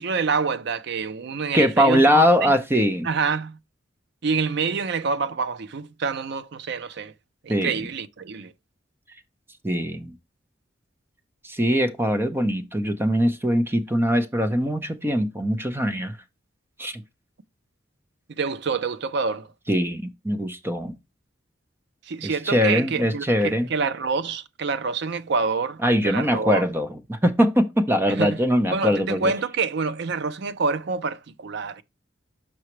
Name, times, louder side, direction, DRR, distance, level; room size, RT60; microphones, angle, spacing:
voice 1, 0.0-2.5 3.0-3.6 4.2-7.1 7.4-8.5 18.3-19.5 22.1-26.6 28.2-28.4 28.7-31.8, right 4 dB, 60° right, 0.5 m, -27 dB
voice 2, 1.5-3.1 7.5-7.8 9.6-10.1 11.4-16.2 16.8-17.0 19.7-20.9 22.2-23.7 25.8-29.3, equal, 10° right, 0.8 m, -22 dB
6.0 x 5.6 x 3.1 m
head